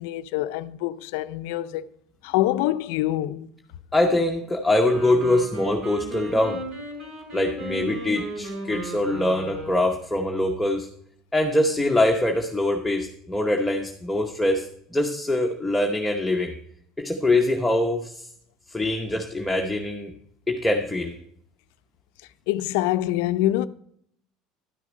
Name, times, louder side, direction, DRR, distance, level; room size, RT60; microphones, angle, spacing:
voice 1, 0.0-1.9 2.2-3.5 22.5-23.7, left 14 dB, 80° left, 0.4 m, -25 dB
voice 2, 3.9-6.6 7.3-10.9 11.3-16.6 17.0-18.3 18.7-20.1 20.5-21.2, left 1 dB, 5° left, 0.9 m, -23 dB
Wind instrument woodwind instrument, 4.7-10.0, right 1 dB, 55° right, 5.0 m, -35 dB
12.0 x 6.5 x 5.1 m
supercardioid pair, 110°, 0 cm